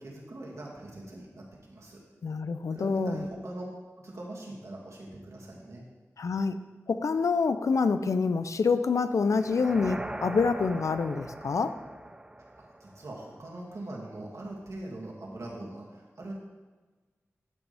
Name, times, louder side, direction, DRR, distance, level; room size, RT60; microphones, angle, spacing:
voice 1, 0.0-2.0 2.7-3.6 4.0-5.8 12.6-16.3, right 1 dB, 70° right, -3 dB, 2.3 m, -41 dB
voice 2, 2.2-3.2 6.2-6.6 6.9-11.7, left 4 dB, 80° left, 11 dB, 0.5 m, -27 dB
sound 1, 9.3-13.4, right 1 dB, 15° right, 0.4 m, -41 dB
13.5 x 6.2 x 3.5 m, 1.3 s
wide cardioid pair, 60°, 5 cm